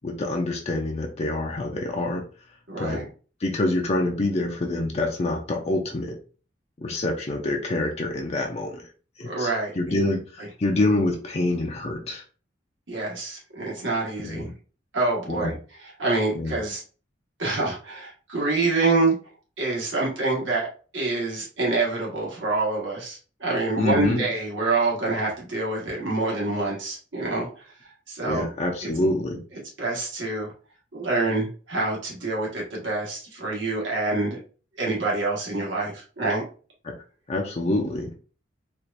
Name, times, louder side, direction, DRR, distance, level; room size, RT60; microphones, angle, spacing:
voice 1, 0.0-2.2 2.8-3.1 3.4-6.1 6.8-8.9 9.2-9.5 9.8-12.2 14.2-14.5 15.3-15.6 16.3-16.5 23.8-24.3 28.2-29.4 36.8-36.9 37.3-38.1, left 2 dB, 35° left, 1 dB, 0.5 m, -26 dB
voice 2, 2.7-3.0 9.2-9.7 12.9-14.5 14.9-15.5 15.8-16.8 17.4-19.1 19.6-20.7 20.9-27.5 28.1-28.5 28.8-28.9 29.8-30.5 30.9-34.4 34.8-36.4, right 3 dB, 75° right, -3 dB, 1.5 m, -26 dB
4.4 x 2.4 x 2.6 m, 0.38 s
head